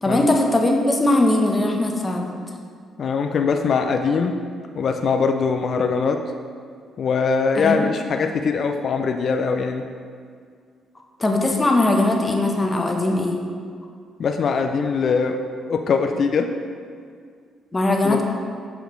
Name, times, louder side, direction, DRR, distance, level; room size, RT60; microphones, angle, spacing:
voice 1, 0.0-2.4 7.6-7.9 11.2-13.4 17.7-18.2, left 2 dB, 20° left, 2 dB, 0.7 m, -20 dB
voice 2, 3.0-4.4 4.8-6.2 7.0-9.9 14.2-16.5 18.0-18.2, left 5 dB, 55° left, 5 dB, 0.3 m, -22 dB
6.5 x 4.9 x 3.0 m, 2.1 s
cardioid pair, 90°, 0 cm